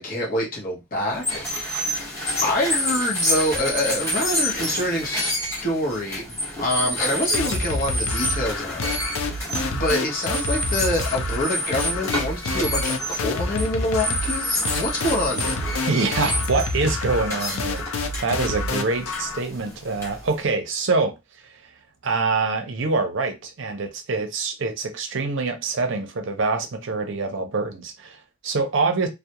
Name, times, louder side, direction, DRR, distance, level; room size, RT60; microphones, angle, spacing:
voice 1, 0.0-1.5 1.7-1.9 2.4-5.3 5.6-15.6, left 1 dB, 40° left, 0.8 m, -26 dB
sound 1, 1.1-20.4, equal, 10° left, 1.0 m, -29 dB
sound 2, 7.3-19.4, left 2 dB, 80° left, 0.5 m, -28 dB
voice 2, 15.8-21.7 22.0-29.1, right 3 dB, 60° right, 0.5 m, -25 dB
2.3 x 2.0 x 2.8 m
head